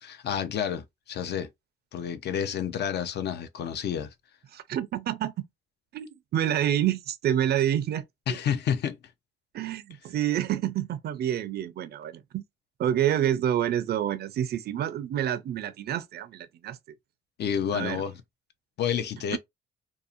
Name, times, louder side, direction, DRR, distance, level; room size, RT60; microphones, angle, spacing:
voice 1, 0.0-1.5 1.9-4.1 8.3-9.0 17.4-18.2 18.8-19.4, left 8 dB, 55° left, 0.4 m, -29 dB
voice 2, 4.5-5.5 5.9-8.4 9.5-12.4 12.8-16.8 17.7-18.0 19.3-19.4, right 11 dB, 55° right, 0.4 m, -28 dB
2.6 x 2.0 x 2.4 m
cardioid pair, 90°, 20 cm